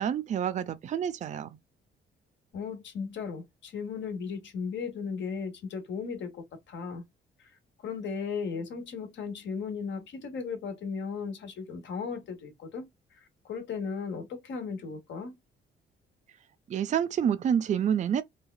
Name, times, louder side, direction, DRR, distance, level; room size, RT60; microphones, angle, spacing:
voice 1, 0.0-1.5 16.7-18.2, right 8 dB, 35° right, 0.4 m, -28 dB
voice 2, 2.5-7.0 7.8-12.8 13.4-15.4, left 5 dB, 65° left, 1.2 m, -36 dB
3.2 x 2.3 x 2.2 m
cardioid pair, 90°, 20 cm